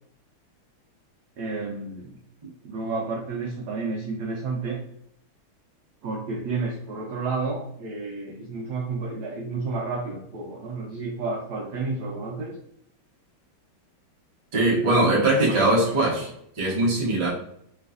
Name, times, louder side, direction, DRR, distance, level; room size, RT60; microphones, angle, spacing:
voice 1, 1.4-2.2 2.6-4.8 6.0-12.6 15.5-15.7 16.6-16.7, right 3 dB, 85° right, 0 dB, 0.8 m, -31 dB
voice 2, 14.5-16.3 16.5-17.3, right 2 dB, 35° right, -5 dB, 0.4 m, -21 dB
3.3 x 3.1 x 2.4 m, 0.72 s
omnidirectional pair, 2.4 m